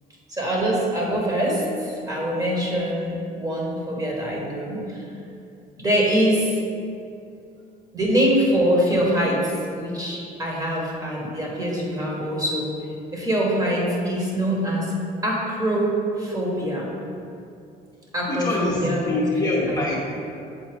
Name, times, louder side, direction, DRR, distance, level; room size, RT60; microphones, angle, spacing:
voice 1, 0.3-5.0 5.8-6.6 7.9-12.7 13.1-14.9 15.2-16.9 18.1-19.1 19.4-19.8, equal, 20° right, -3 dB, 1.3 m, -24 dB
voice 2, 18.3-19.9, left 2 dB, 20° left, -4 dB, 0.9 m, -24 dB
7.3 x 3.9 x 3.5 m, 2.5 s
cardioid pair, 110°, 17 cm